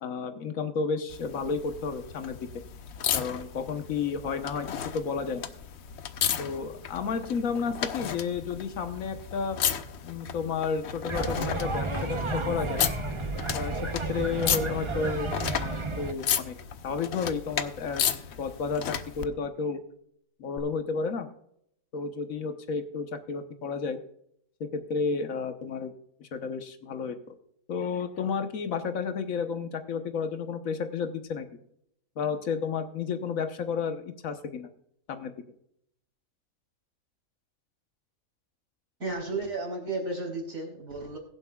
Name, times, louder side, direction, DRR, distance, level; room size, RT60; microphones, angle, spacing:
voice 1, 0.0-2.5 3.1-5.5 6.4-9.6 10.0-12.8 13.5-16.5 16.8-18.0 18.4-19.8 20.4-21.3 21.9-24.0 24.6-25.9 26.2-27.3 27.7-31.5 32.2-34.7 35.1-35.3, left 5 dB, 80° left, 8 dB, 1.5 m, -32 dB
sound 1, 1.1-19.3 20.6-20.7, left 8 dB, 60° left, 0.9 m, -34 dB
sound 2, 11.1-16.1, right 2 dB, 25° right, 0.8 m, -32 dB
voice 2, 39.0-41.2, right 2 dB, 80° right, 0 dB, 4.1 m, -33 dB
21.5 x 7.6 x 2.3 m, 0.71 s
omnidirectional pair, 1.4 m